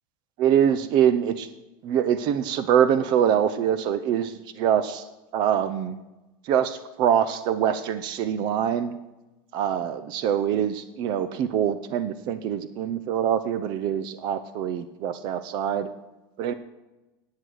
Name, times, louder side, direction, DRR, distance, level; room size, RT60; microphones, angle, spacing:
voice 1, 0.4-1.5 1.8-5.0 5.3-5.9 6.5-8.9 9.5-15.9 16.4-16.5, right 9 dB, 40° right, 13 dB, 0.6 m, -24 dB
12.5 x 8.4 x 6.4 m, 1.0 s
supercardioid pair, 150°, 12 cm